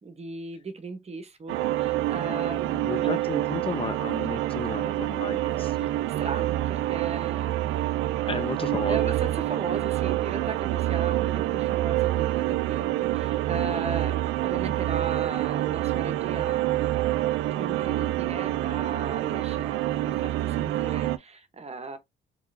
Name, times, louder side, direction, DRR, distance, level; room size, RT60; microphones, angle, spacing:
voice 1, 0.0-3.1 5.8-7.8 8.1-8.5 8.9-16.7 17.6-19.8 20.1-22.0, right 4 dB, 30° right, 0.9 m, -37 dB
sound 1, 1.5-21.2, right 14 dB, 85° right, 0.4 m, -27 dB
voice 2, 2.8-5.9 8.3-9.1, left 5 dB, 30° left, 0.5 m, -33 dB
3.6 x 3.0 x 2.6 m
cardioid pair, 90°, 20 cm